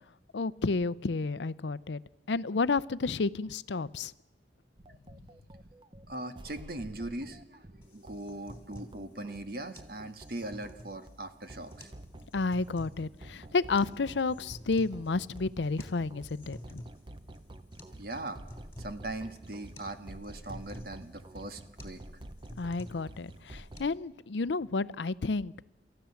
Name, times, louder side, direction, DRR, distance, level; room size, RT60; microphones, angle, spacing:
voice 1, 0.3-2.0 2.3-4.1 12.3-16.8 22.6-25.6, left 3 dB, 90° left, 17 dB, 0.6 m, -31 dB
sound 1, 4.8-23.9, right 1 dB, 30° right, 0.9 m, -49 dB
voice 2, 6.1-11.9 18.0-18.4 18.8-22.0, right 2 dB, 60° right, 8 dB, 1.6 m, -40 dB
sound 2, 7.8-23.8, left 1 dB, 15° left, 3.1 m, -51 dB
29.0 x 14.0 x 7.1 m, 0.98 s
head